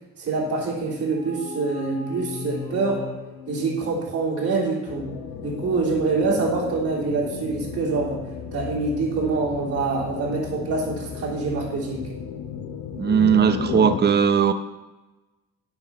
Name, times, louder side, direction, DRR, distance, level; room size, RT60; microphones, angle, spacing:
voice 1, 0.2-3.0 3.5-5.1 5.4-8.2 8.5-12.1, right 3 dB, 50° right, -5 dB, 3.3 m, -25 dB
sound 1, 0.7-4.5, left 5 dB, 30° left, 3.7 m, -38 dB
sound 2, 4.9-14.0, left 7 dB, 65° left, 1.1 m, -34 dB
voice 2, 13.0-14.5, right 7 dB, 35° right, 9 dB, 0.7 m, -18 dB
9.1 x 5.8 x 5.8 m, 1.1 s
cardioid pair, 90°, 30 cm